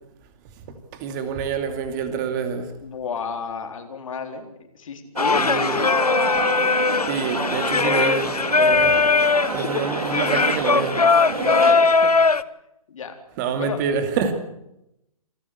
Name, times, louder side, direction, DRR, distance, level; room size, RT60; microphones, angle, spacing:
voice 1, 0.9-2.7 5.3-5.8 7.1-9.1 9.5-11.0 13.4-14.3, right 6 dB, 30° right, 2.5 m, -27 dB
voice 2, 2.8-6.3 9.5-9.6 11.3-12.1 12.9-13.2 13.6-14.0, left 6 dB, 60° left, 3.8 m, -32 dB
Singing, 5.2-12.4, left 4 dB, 90° left, 0.9 m, -20 dB
sound 1, 5.2-11.7, right 4 dB, 70° right, 3.3 m, -30 dB
27.5 x 12.5 x 8.3 m
figure-of-eight pair, 135°, 19 cm